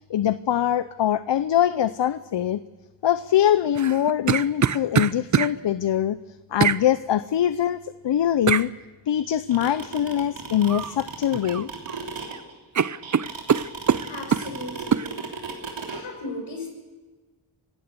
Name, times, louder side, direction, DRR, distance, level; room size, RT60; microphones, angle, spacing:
voice 1, 0.1-2.6 3.0-6.2 6.5-7.8 8.0-8.7 9.1-11.7, left 10 dB, 70° left, 14 dB, 0.7 m, -23 dB
sound 1, 3.7-5.5 6.6-6.8 8.5-8.7 10.7-11.0 11.3-12.0 12.3-12.4 12.7-14.5 14.9-15.1, right 7 dB, 40° right, 0.6 m, -23 dB
sound 2, 9.3-16.0, right 5 dB, 90° right, 3.2 m, -35 dB
voice 2, 14.1-15.2 15.9-16.7, left 2 dB, 85° left, 2 dB, 5.8 m, -36 dB
25.5 x 16.0 x 6.7 m, 1.3 s
cardioid pair, 60°, 44 cm